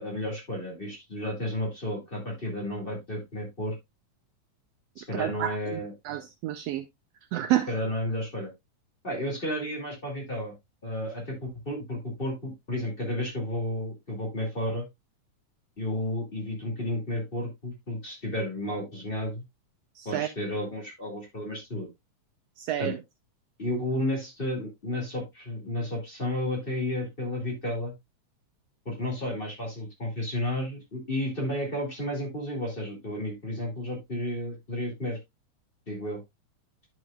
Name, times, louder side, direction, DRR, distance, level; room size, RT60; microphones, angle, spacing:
voice 1, 0.0-3.7 5.0-5.9 7.7-8.5 9.0-10.5 10.8-14.9 15.8-19.4 20.0-21.9 22.8-22.9 23.6-27.9 28.8-35.2 35.9-36.2, left 1 dB, 20° left, 2.2 m, -32 dB
voice 2, 5.1-5.8 6.0-6.9 7.3-7.7 20.0-20.3 22.6-23.0, right 12 dB, 90° right, 1.4 m, -29 dB
10.5 x 6.4 x 2.3 m
omnidirectional pair, 3.4 m